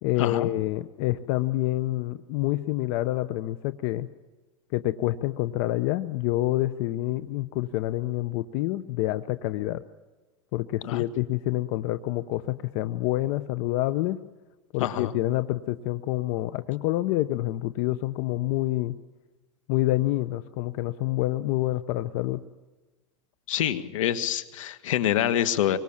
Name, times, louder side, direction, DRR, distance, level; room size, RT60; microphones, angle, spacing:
voice 1, 0.0-4.1 4.7-9.8 10.5-14.2 14.7-19.0 19.7-22.4, left 16 dB, 55° left, 13 dB, 0.9 m, -27 dB
voice 2, 14.8-15.1 23.5-25.8, left 11 dB, 80° left, 11 dB, 1.8 m, -26 dB
24.5 x 24.0 x 7.3 m, 1.2 s
supercardioid pair, 125°, 16 cm